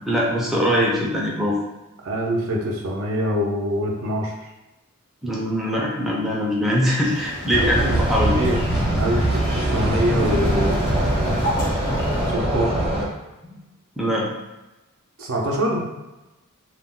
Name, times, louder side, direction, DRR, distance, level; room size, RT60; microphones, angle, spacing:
voice 1, 0.1-1.6 5.2-8.3 13.5-13.6 14.0-14.3, equal, ahead, -5 dB, 0.4 m, -22 dB
voice 2, 2.0-4.3 7.6-7.7 8.1-8.6 8.9-10.9 12.3-12.7 15.2-15.8, equal, 65° right, -1 dB, 0.6 m, -24 dB
sound 1, 7.0-12.3, left 1 dB, 55° left, 0.5 m, -34 dB
sound 2, 7.5-13.1, right 1 dB, 25° right, 0.8 m, -22 dB
2.3 x 2.1 x 3.6 m, 1.1 s
head